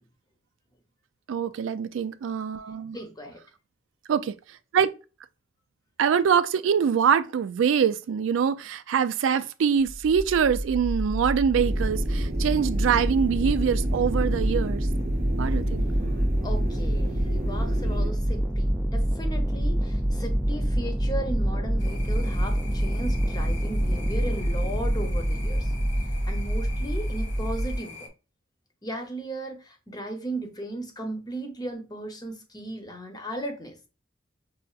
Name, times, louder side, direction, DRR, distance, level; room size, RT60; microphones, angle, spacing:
voice 1, 1.3-3.0 4.1-4.3 4.7-4.9 6.0-14.9 15.4-15.8, right 7 dB, 85° right, 0.3 m, -24 dB
voice 2, 2.9-3.4 16.1-25.7 26.3-28.1 28.8-33.8, right 1 dB, 20° left, 0.8 m, -36 dB
sound 1, 9.8-27.8, equal, ahead, 0.5 m, -26 dB
sound 2, 11.5-18.1, right 1 dB, 40° right, 0.7 m, -33 dB
sound 3, 21.8-28.1, left 4 dB, 65° left, 0.8 m, -44 dB
5.6 x 2.5 x 2.4 m
head